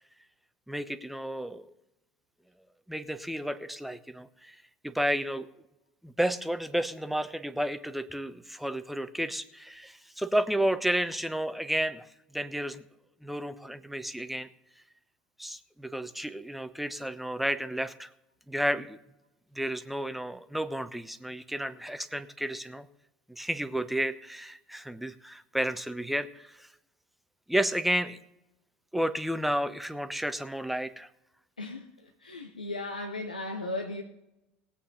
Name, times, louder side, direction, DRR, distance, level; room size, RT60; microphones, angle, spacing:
voice 1, 0.7-1.7 2.9-5.5 6.0-12.1 12.3-12.8 13.2-14.5 15.4-18.1 18.5-19.0 19.5-22.9 23.3-26.7 27.5-28.2 28.9-31.1, right 1 dB, 5° right, 10 dB, 0.9 m, -32 dB
voice 2, 32.2-34.0, left 2 dB, 85° left, 4 dB, 0.8 m, -36 dB
19.5 x 8.4 x 3.9 m, 0.89 s
figure-of-eight pair, 65°, 4 cm